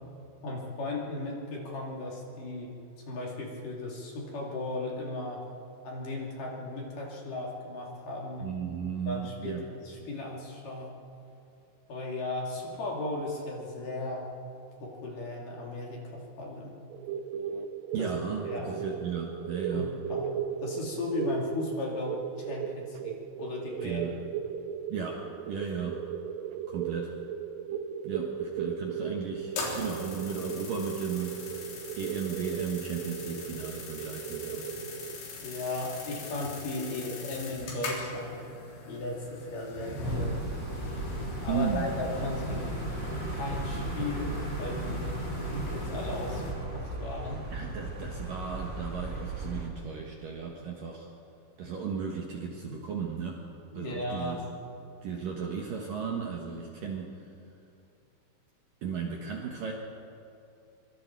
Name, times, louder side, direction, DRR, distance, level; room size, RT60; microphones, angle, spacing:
voice 1, 0.4-2.7 3.0-5.4 5.8-8.5 9.1-10.9 11.9-14.2 14.8-16.7 18.0-18.1 18.4-18.8 19.7-20.3 20.6-24.1 35.4-38.4 38.9-40.4 41.4-42.8 43.3-45.1 45.5-47.4 53.7-54.4, left 2 dB, 50° left, -2 dB, 3.9 m, -36 dB
voice 2, 8.4-9.6 17.9-19.9 23.8-24.2 24.9-26.0 26.7-27.1 28.0-34.6 41.5-41.9 47.5-51.1 51.6-53.4 53.7-54.4 55.0-57.1 58.8-59.7, right 6 dB, 60° right, 0 dB, 2.5 m, -35 dB
sound 1, 16.9-35.2, right 8 dB, 85° right, 3.2 m, -36 dB
sound 2, 29.4-46.5, left 1 dB, 75° left, 5.9 m, -39 dB
sound 3, 40.0-49.7, right 2 dB, 40° right, 1.0 m, -37 dB
24.5 x 24.0 x 4.7 m, 2.6 s
omnidirectional pair, 5.5 m